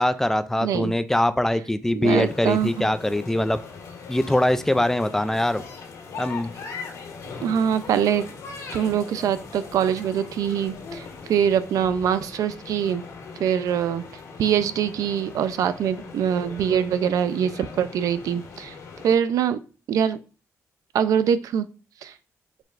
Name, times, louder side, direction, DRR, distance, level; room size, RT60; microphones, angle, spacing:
voice 1, 0.0-3.6 4.1-5.6 6.2-6.5, left 1 dB, 5° left, 11 dB, 0.3 m, -22 dB
voice 2, 0.6-0.9 1.9-2.9 7.4-8.3 8.7-13.0 13.4-14.0 14.4-18.7 19.0-19.6 19.9-20.2 20.9-21.7 22.0-22.1, right 8 dB, 85° right, 12 dB, 0.5 m, -23 dB
sound 1, 2.2-19.1, left 5 dB, 75° left, 1.7 m, -40 dB
7.5 x 5.0 x 2.5 m, 0.35 s
wide cardioid pair, 160°, 6 cm